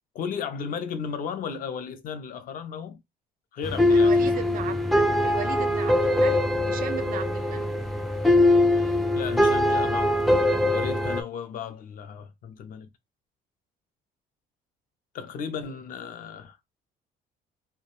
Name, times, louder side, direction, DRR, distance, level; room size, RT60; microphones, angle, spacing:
voice 1, 0.1-3.0 3.5-4.3 9.1-12.9 15.1-16.6, left 6 dB, 55° left, 0.5 m, -35 dB
sound 1, 3.6-11.2, left 1 dB, ahead, 0.3 m, -22 dB
voice 2, 3.9-7.7, right 8 dB, 55° right, 0.5 m, -37 dB
2.4 x 2.2 x 3.0 m
cardioid pair, 110°, 17 cm